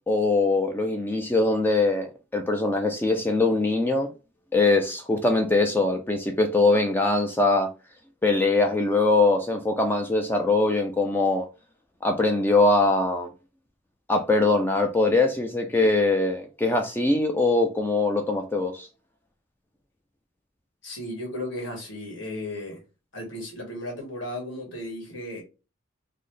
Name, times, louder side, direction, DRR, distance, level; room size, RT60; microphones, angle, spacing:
voice 1, 0.1-2.1 2.3-4.1 4.5-7.7 8.2-11.5 12.0-13.3 14.1-18.9, left 2 dB, 10° left, 0.3 m, -22 dB
voice 2, 20.8-22.8 23.1-25.4, left 1 dB, 60° left, 1.6 m, -35 dB
3.9 x 2.0 x 3.2 m
head